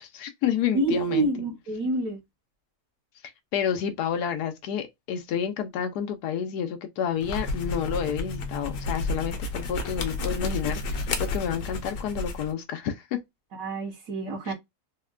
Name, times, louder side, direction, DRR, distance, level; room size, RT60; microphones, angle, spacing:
voice 1, 0.0-1.3 3.5-13.2 14.4-14.5, left 8 dB, 90° left, 1.1 m, -30 dB
voice 2, 0.7-2.2 13.5-14.5, right 2 dB, 65° right, 1.3 m, -27 dB
sound 1, 7.1-12.5, left 2 dB, 70° left, 1.2 m, -31 dB
3.6 x 2.1 x 2.3 m
omnidirectional pair, 1.6 m